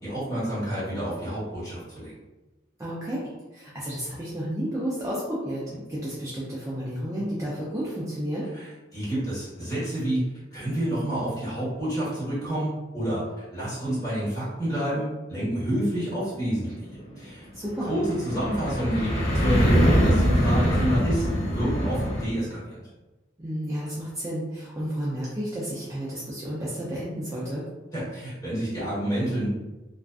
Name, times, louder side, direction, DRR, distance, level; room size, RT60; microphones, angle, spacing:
voice 1, 0.0-2.1 8.5-8.7 8.9-10.2 10.5-13.2 13.5-17.4 17.8-22.8 27.9-29.5, right 1 dB, 20° left, -10 dB, 1.3 m, -28 dB
voice 2, 2.8-5.6 5.9-8.5 17.5-17.9 23.4-27.6, equal, 15° right, -7 dB, 0.4 m, -31 dB
sound 1, 16.0-22.2, equal, 40° left, 0.8 m, -24 dB
2.4 x 2.3 x 2.3 m, 1.1 s
head